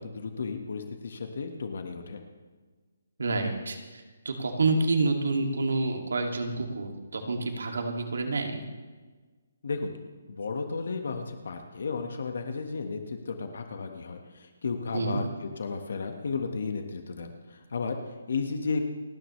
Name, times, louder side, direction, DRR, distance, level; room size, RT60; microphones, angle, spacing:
voice 1, 0.0-2.2 9.6-9.9 10.3-18.8, left 4 dB, 60° left, 5 dB, 1.5 m, -34 dB
voice 2, 3.2-8.6 14.9-15.2, right 3 dB, 80° right, 3 dB, 2.3 m, -28 dB
29.0 x 10.0 x 3.2 m, 1.4 s
hypercardioid pair, 175°, 0 cm